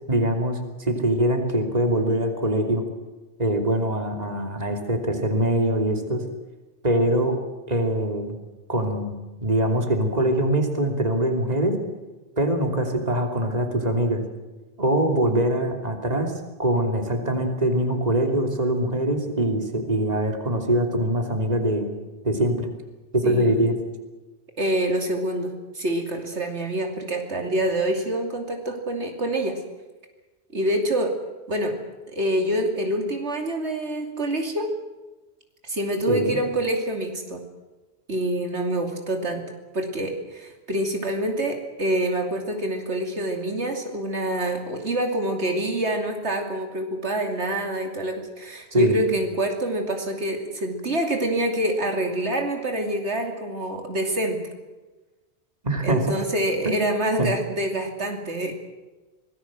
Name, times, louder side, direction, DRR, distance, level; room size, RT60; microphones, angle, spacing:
voice 1, 0.1-2.8 3.4-6.2 6.8-7.4 7.7-8.4 8.7-11.8 12.4-14.2 14.8-16.3 16.6-21.9 22.2-22.7 23.1-23.7 36.1-36.4 48.7-49.0 55.6-56.2 56.6-56.9 57.2-57.3, right 1 dB, 35° right, 4 dB, 3.3 m, -23 dB
voice 2, 23.2-23.6 24.6-29.6 30.5-31.1 31.5-31.7 32.1-34.7 35.6-37.4 38.1-54.4 55.8-58.5, right 1 dB, 80° right, 3 dB, 3.1 m, -26 dB
25.5 x 19.5 x 7.7 m, 1.2 s
omnidirectional pair, 1.1 m